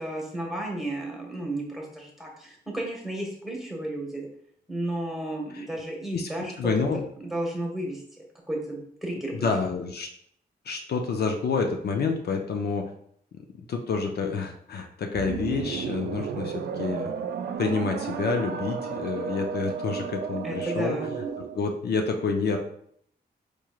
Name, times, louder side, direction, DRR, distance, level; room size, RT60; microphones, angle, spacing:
voice 1, 0.0-4.3 4.7-6.7 7.2-9.5 20.4-21.1, right 1 dB, ahead, -1 dB, 1.1 m, -33 dB
voice 2, 6.6-7.0 9.3-10.1 10.7-12.9 13.3-17.1 17.6-21.0 21.5-22.6, left 5 dB, 65° left, 3 dB, 0.5 m, -28 dB
sound 1, 15.1-21.6, right 6 dB, 70° right, 0.4 m, -33 dB
4.6 x 3.0 x 2.3 m, 0.66 s
cardioid pair, 85°, 18 cm